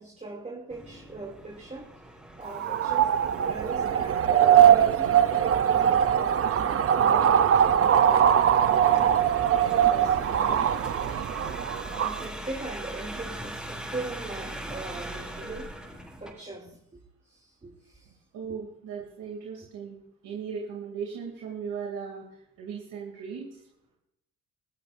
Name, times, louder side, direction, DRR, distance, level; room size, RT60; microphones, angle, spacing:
voice 1, 0.0-3.1 3.4-7.5 8.0-8.5 8.9-9.1 9.5-10.7 12.0-17.0 17.2-18.2 18.5-18.6, right 2 dB, 25° right, -2 dB, 2.8 m, -40 dB
sound 1, 0.7-16.3, right 1 dB, ahead, 5.4 m, -41 dB
sound 2, 2.5-12.2, right 9 dB, 50° right, 0.7 m, -21 dB
voice 2, 18.3-20.0 20.2-23.6, right 6 dB, 85° right, -1 dB, 2.9 m, -37 dB
15.5 x 15.0 x 2.6 m, 0.78 s
cardioid pair, 90°, 30 cm